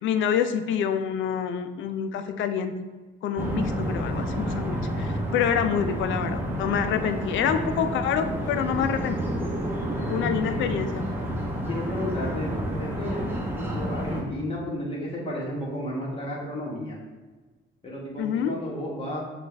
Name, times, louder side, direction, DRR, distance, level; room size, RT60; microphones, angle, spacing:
voice 1, 0.0-2.7 3.2-9.2 10.1-11.0 18.2-18.5, left 8 dB, 75° left, 9 dB, 0.4 m, -27 dB
sound 1, 3.3-14.2, equal, 10° right, 1.0 m, -30 dB
voice 2, 10.4-10.8 11.7-13.3 13.6-17.0 17.8-19.2, left 1 dB, 30° left, -4 dB, 1.4 m, -33 dB
6.3 x 2.4 x 3.3 m, 1.3 s
cardioid pair, 90°, 20 cm